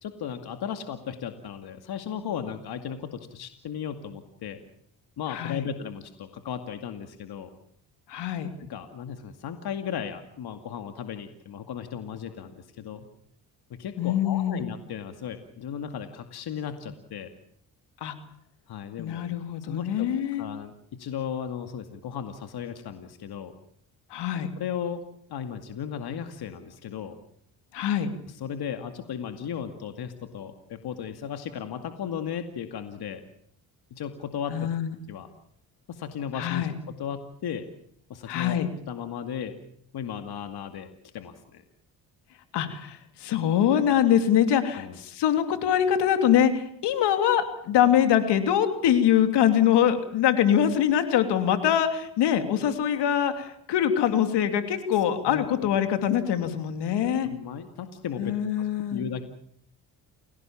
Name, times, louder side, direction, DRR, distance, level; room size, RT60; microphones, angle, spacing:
voice 1, 0.0-4.6 5.2-7.5 8.6-13.1 13.7-17.3 18.7-19.3 19.7-20.1 20.4-23.5 24.5-25.0 25.3-27.2 28.3-33.2 33.9-34.6 35.1-35.3 35.9-37.7 38.1-38.6 38.9-39.5 39.9-41.6 44.7-45.0 55.3-55.5 57.2-59.2, left 8 dB, 70° left, 7 dB, 2.4 m, -36 dB
voice 2, 5.3-5.6 8.1-8.5 14.0-14.6 18.0-18.1 19.0-20.5 24.1-24.5 27.7-28.1 34.5-34.9 36.3-36.7 38.3-38.7 42.5-57.3 58.2-59.0, left 9 dB, 85° left, 8 dB, 3.0 m, -24 dB
29.5 x 17.5 x 7.4 m, 0.68 s
cardioid pair, 80°, 40 cm